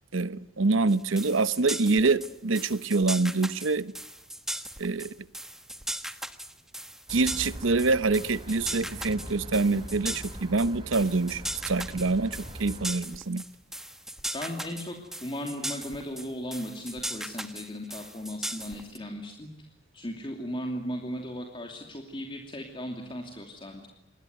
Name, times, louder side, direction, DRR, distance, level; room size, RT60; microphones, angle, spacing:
voice 1, 0.1-3.9 4.8-5.1 7.1-13.4, right 3 dB, 75° right, 0.9 m, -26 dB
sound 1, 0.9-19.0, right 1 dB, ahead, 1.3 m, -38 dB
sound 2, 7.1-12.9, equal, 25° right, 5.8 m, -42 dB
voice 2, 14.3-19.5 19.9-23.9, equal, 25° left, 2.8 m, -36 dB
27.0 x 21.0 x 9.4 m
head